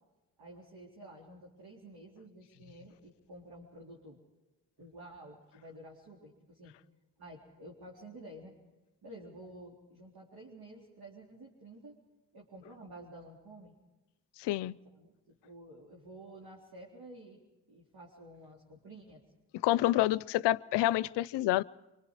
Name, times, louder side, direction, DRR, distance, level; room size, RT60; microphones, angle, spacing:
voice 1, 0.4-4.2 4.8-6.7 7.2-8.6 9.0-12.0 12.3-13.7 14.8-17.4 17.7-19.2, right 1 dB, 60° right, 3.8 m, -51 dB
voice 2, 14.4-14.8 19.6-21.6, left 15 dB, 75° left, 0.6 m, -28 dB
25.5 x 24.5 x 4.9 m
supercardioid pair, 55°, 42 cm